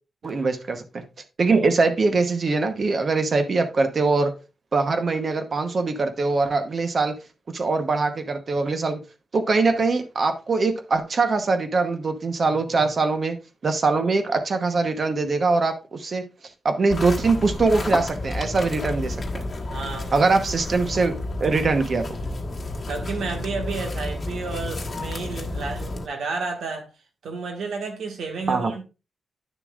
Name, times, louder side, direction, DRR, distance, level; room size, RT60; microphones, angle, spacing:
voice 1, 0.2-1.0 1.4-4.3 4.7-7.2 7.5-9.0 9.3-13.4 13.6-16.2 16.6-19.4 20.1-22.2 28.5-28.7, right 3 dB, 40° right, 1.0 m, -22 dB
sound 1, 16.9-26.1, left 2 dB, 35° left, 1.2 m, -31 dB
voice 2, 19.7-20.1 22.9-26.9 27.2-28.8, right 4 dB, 90° right, 1.6 m, -31 dB
10.5 x 6.7 x 2.4 m
wide cardioid pair, 150°, 0 cm